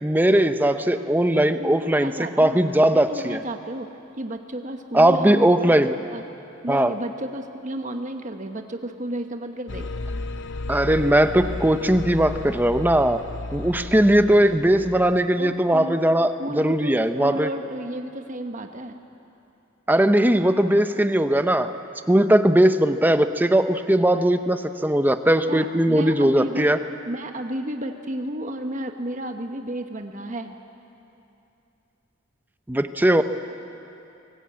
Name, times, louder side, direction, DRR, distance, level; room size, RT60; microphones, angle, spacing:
voice 1, 0.0-2.1 2.4-3.4 4.9-6.0 6.7-6.9 10.7-13.2 13.5-17.5 19.9-21.7 22.1-26.8 32.7-33.2, right 1 dB, 10° right, 9 dB, 0.7 m, -19 dB
voice 2, 1.6-2.6 2.9-3.9 4.2-5.4 6.1-6.2 6.6-9.9 15.4-16.0 16.4-19.0 25.5-26.7 27.1-30.6, right 1 dB, 40° right, 5 dB, 1.2 m, -32 dB
sound 1, 9.7-15.4, left 2 dB, 60° left, 0.8 m, -34 dB
24.5 x 18.5 x 8.8 m, 2.8 s
head